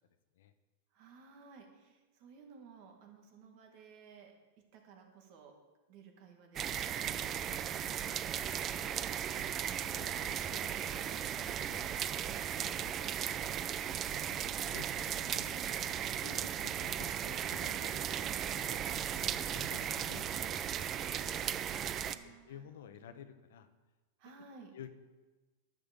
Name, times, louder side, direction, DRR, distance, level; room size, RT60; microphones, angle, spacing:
voice 1, 0.9-5.6 5.9-8.9 15.2-15.7 17.9-18.4 22.0-22.7 23.0-23.1 24.2-24.7, right 5 dB, 50° right, 3 dB, 2.0 m, -57 dB
sound 1, 6.6-22.2, right 9 dB, 25° right, 0.4 m, -36 dB
voice 2, 9.4-12.9 13.2-18.0 18.5-21.7 22.0-23.7 24.7-24.9, left 8 dB, 75° left, 10 dB, 0.9 m, -54 dB
10.5 x 7.8 x 5.3 m, 1.2 s
supercardioid pair, 145°, 0 cm